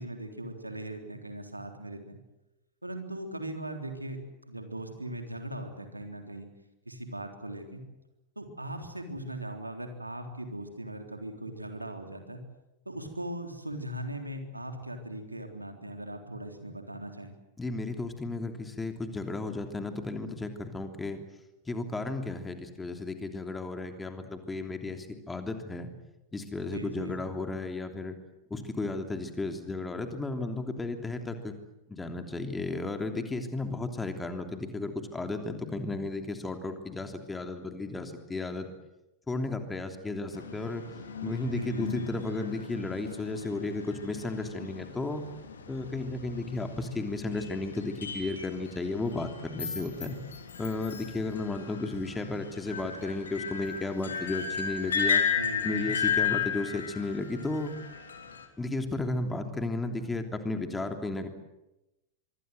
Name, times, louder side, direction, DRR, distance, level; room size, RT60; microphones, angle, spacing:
voice 1, 0.0-2.2 2.8-4.2 4.5-6.5 6.9-7.8 8.4-12.4 12.9-17.3 26.7-27.2 41.5-42.1 55.4-55.9, right 1 dB, 85° right, 5 dB, 3.6 m, -39 dB
voice 2, 17.6-21.2 21.7-25.9 26.3-28.1 28.5-31.5 31.9-38.7 39.3-40.8 41.2-45.2 45.7-50.2 50.6-55.2 55.6-57.7 58.6-61.3, left 2 dB, 10° left, 6 dB, 3.1 m, -34 dB
sound 1, 40.3-58.5, left 7 dB, 70° left, 3.4 m, -35 dB
25.0 x 24.0 x 8.0 m, 0.95 s
figure-of-eight pair, 90°, 0 cm